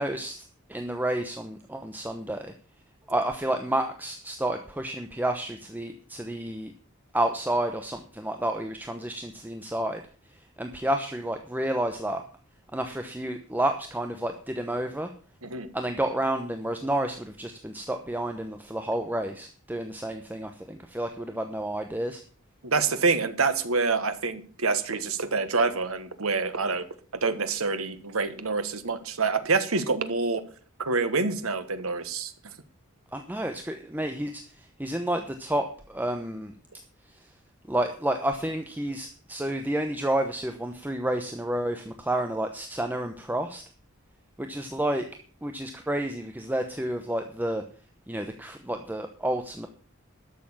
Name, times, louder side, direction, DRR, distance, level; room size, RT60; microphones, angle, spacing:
voice 1, 0.0-2.5 3.1-6.7 7.1-10.0 10.6-12.2 12.7-15.1 15.7-22.2 33.1-36.5 37.7-43.6 44.4-45.1 45.4-47.6 48.1-49.7, right 1 dB, 10° right, 5 dB, 0.9 m, -30 dB
voice 2, 22.6-26.9 27.2-30.4 30.9-32.3, right 4 dB, 90° right, 10 dB, 1.4 m, -26 dB
12.5 x 7.0 x 7.2 m, 0.42 s
head